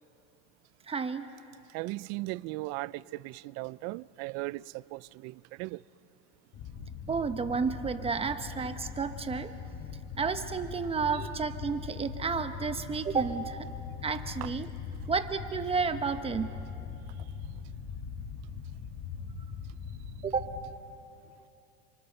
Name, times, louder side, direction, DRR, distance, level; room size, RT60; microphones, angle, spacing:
voice 1, 0.9-1.3 7.1-9.5 10.2-13.7 14.0-14.7 15.1-16.5 20.2-20.5, right 5 dB, 20° right, 0.9 m, -31 dB
voice 2, 1.7-5.8 11.1-11.3, right 21 dB, 55° right, 0.5 m, -37 dB
sound 1, 6.5-20.7, left 6 dB, 50° left, 1.9 m, -41 dB
29.0 x 27.5 x 6.7 m
supercardioid pair, 140°, 31 cm